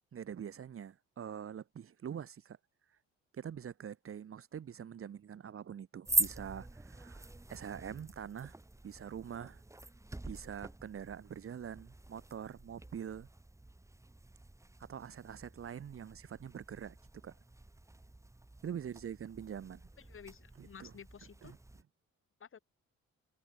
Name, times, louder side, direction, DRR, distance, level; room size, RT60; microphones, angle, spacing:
voice 1, 0.1-2.6 3.3-8.6 8.8-9.6 10.3-13.3 14.8-17.0 17.2-17.4 18.6-19.8 20.6-20.9 21.4-21.6, right 8 dB, 45° right, 1.3 m, -44 dB
sound 1, 6.0-21.8, right 2 dB, 10° right, 1.5 m, -43 dB
voice 2, 20.0-21.6 22.4-22.6, left 7 dB, 45° left, 2.6 m, -53 dB
cardioid pair, 90°, 30 cm